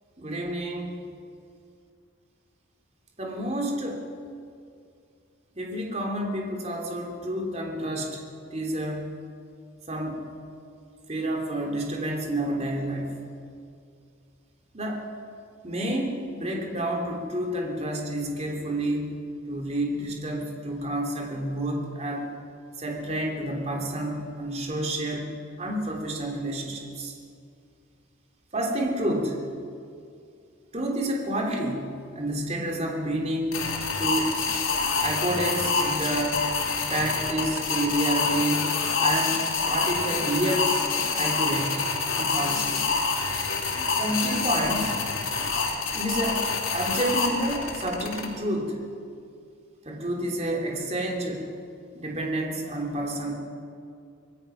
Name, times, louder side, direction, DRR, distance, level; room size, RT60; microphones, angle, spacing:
voice 1, 0.2-0.9 3.2-4.0 5.6-8.2 8.5-9.1 9.9-10.2 11.1-13.1 14.7-15.0 15.6-19.2 19.5-22.3 22.8-25.3 25.6-27.1 28.5-29.4 30.7-33.7 34.0-34.3 35.0-36.4 36.9-38.7 39.0-40.7 41.1-42.9 44.0-45.0 45.9-46.5 46.7-48.7 49.8-51.4 51.9-53.3, right 1 dB, 30° right, 0 dB, 3.2 m, -29 dB
sound 1, 33.5-48.3, left 4 dB, 85° left, 3.3 m, -27 dB
25.0 x 20.5 x 5.9 m, 2.4 s
head